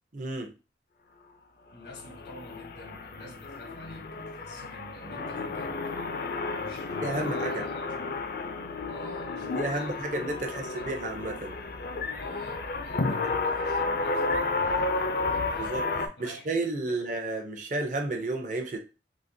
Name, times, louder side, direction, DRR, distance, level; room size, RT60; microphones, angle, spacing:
voice 1, 0.1-0.5 7.0-7.6 9.4-11.6 15.6-15.8 16.2-18.8, right 2 dB, 45° right, 0.6 m, -32 dB
voice 2, 1.7-6.2 6.6-8.1 8.9-10.1 10.4-11.1 12.2-15.8 16.2-16.5 16.9-17.0, left 1 dB, 85° left, 1.2 m, -47 dB
sound 1, 1.8-16.1, left 3 dB, 55° left, 0.4 m, -32 dB
3.9 x 2.8 x 2.6 m
head